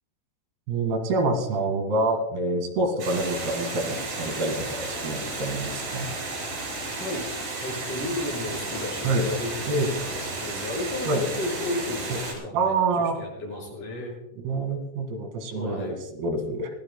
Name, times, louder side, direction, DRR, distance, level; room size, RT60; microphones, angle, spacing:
voice 1, 0.7-6.1 9.0-9.3 9.7-9.9 11.0-11.2 12.1-12.2 12.5-13.2 14.4-16.7, right 2 dB, 85° right, 4 dB, 4.1 m, -27 dB
Water, 3.0-12.3, right 2 dB, 70° right, 7.0 m, -33 dB
voice 2, 7.6-14.2 15.5-16.0, left 2 dB, 55° left, -2 dB, 7.5 m, -33 dB
25.0 x 16.0 x 2.2 m, 0.91 s
omnidirectional pair, 4.5 m